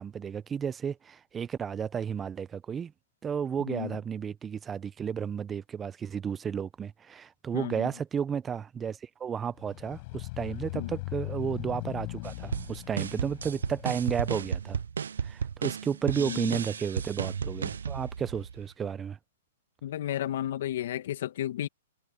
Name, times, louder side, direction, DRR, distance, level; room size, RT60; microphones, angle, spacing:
voice 1, 0.0-2.9 3.2-14.8 15.2-19.2, right 7 dB, 15° right, 0.9 m, -33 dB
voice 2, 7.5-7.9 10.7-10.9 16.2-16.5 19.8-21.7, left 12 dB, 60° left, 2.4 m, -33 dB
sound 1, 9.6-14.5, left 24 dB, 45° left, 5.4 m, -39 dB
sound 2, 12.2-18.7, right 7 dB, 80° right, 0.8 m, -34 dB
hypercardioid pair, 130°, 0 cm